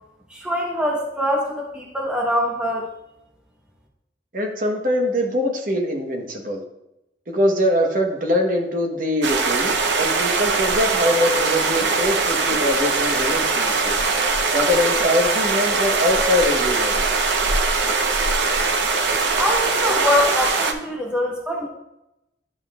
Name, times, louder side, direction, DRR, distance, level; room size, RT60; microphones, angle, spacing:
voice 1, 0.3-2.9 19.4-21.7, left 1 dB, 5° right, -2 dB, 0.9 m, -23 dB
voice 2, 4.3-6.6 7.3-14.0 14.5-17.0, left 1 dB, 45° right, 2 dB, 1.0 m, -22 dB
sound 1, 9.2-20.7, right 4 dB, 80° right, 0.7 m, -21 dB
11.5 x 5.2 x 2.4 m, 0.88 s
head